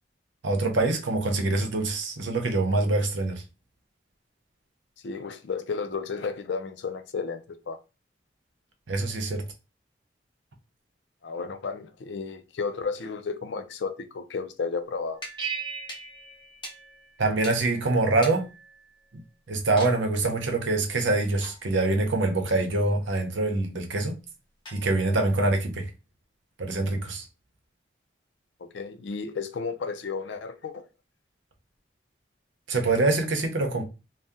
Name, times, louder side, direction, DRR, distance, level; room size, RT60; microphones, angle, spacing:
voice 1, 0.4-3.4 8.9-9.4 17.2-18.4 19.1-19.2 19.5-24.2 24.7-25.9 26.6-27.2 32.7-33.9, right 2 dB, 80° right, 0.7 m, -25 dB
voice 2, 5.0-7.8 11.2-15.2 28.6-30.8, left 5 dB, 75° left, 0.4 m, -33 dB
sound 1, 15.1-19.3 19.8-20.1 21.4-21.9 24.7-25.3, left 1 dB, 25° left, 0.8 m, -45 dB
sound 2, 15.4-17.6, right 6 dB, 25° right, 0.6 m, -37 dB
2.7 x 2.1 x 3.5 m
head